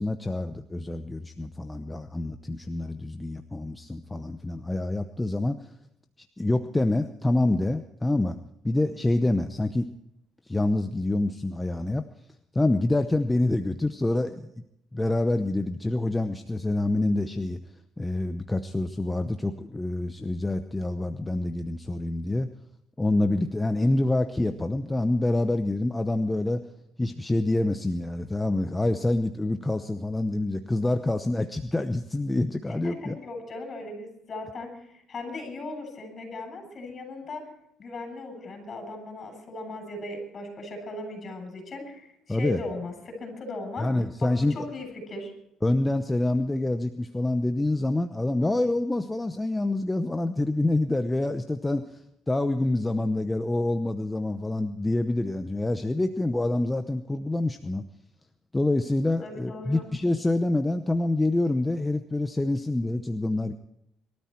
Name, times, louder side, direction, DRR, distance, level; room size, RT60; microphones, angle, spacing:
voice 1, 0.0-5.6 6.4-8.4 8.6-9.9 10.5-12.0 12.5-14.5 14.9-17.6 18.0-22.5 23.0-26.6 27.0-33.1 42.3-42.6 43.8-44.6 45.6-52.0 52.3-57.8 58.5-63.5, left 2 dB, 10° left, 8 dB, 0.8 m, -26 dB
voice 2, 32.8-34.8 35.1-37.4 37.8-43.9 44.2-45.3 59.2-59.8, left 2 dB, 40° left, 6 dB, 7.5 m, -38 dB
23.0 x 13.0 x 4.5 m, 0.80 s
cardioid pair, 105°, 0 cm